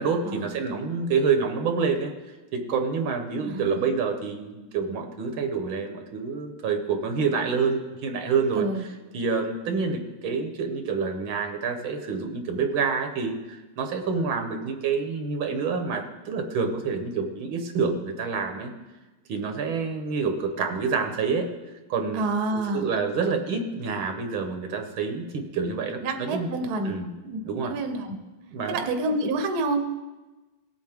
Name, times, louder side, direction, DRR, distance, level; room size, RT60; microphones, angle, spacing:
voice 1, 0.0-2.1 2.5-18.7 19.3-21.5 21.9-22.2 22.5-26.5 26.8-27.1 27.4-27.7 28.5-28.8, right 5 dB, 80° right, 5 dB, 1.9 m, -27 dB
voice 2, 3.4-3.8 8.6-8.8 22.1-22.9 26.0-26.9 27.2-28.1 28.7-29.9, right 2 dB, 55° right, 5 dB, 1.4 m, -28 dB
18.5 x 8.3 x 3.6 m, 1.2 s
omnidirectional pair, 2.2 m